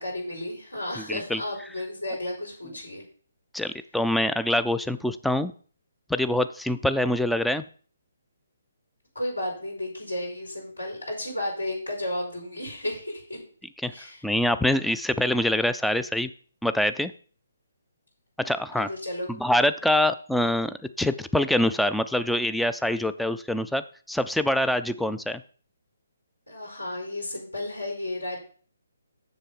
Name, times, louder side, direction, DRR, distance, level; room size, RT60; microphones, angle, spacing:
voice 1, 0.0-3.0 3.6-3.7 9.1-13.4 13.9-14.2 18.8-19.3 19.8-19.9 26.5-28.4, left 1 dB, 80° left, 2 dB, 4.8 m, -33 dB
voice 2, 1.0-1.4 3.5-5.5 6.1-7.6 13.8-13.9 14.2-16.3 16.6-17.1 18.4-18.9 19.3-23.8 24.1-25.4, left 1 dB, ahead, 11 dB, 0.3 m, -25 dB
7.3 x 6.8 x 5.3 m, 0.44 s
figure-of-eight pair, 135°, 0 cm